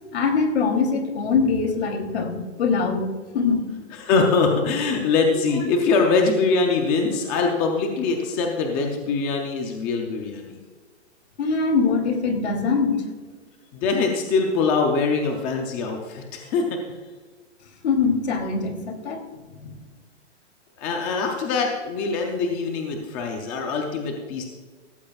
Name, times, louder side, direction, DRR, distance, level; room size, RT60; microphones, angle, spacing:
voice 1, 0.1-3.1 3.3-3.6 5.3-5.8 11.4-13.0 17.8-19.2 19.6-19.7, left 4 dB, 60° left, 5 dB, 3.1 m, -23 dB
voice 2, 4.0-10.6 13.7-16.8 20.8-24.4, left 4 dB, 10° left, 2 dB, 0.5 m, -23 dB
17.0 x 14.5 x 2.4 m, 1.4 s
hypercardioid pair, 165°, 36 cm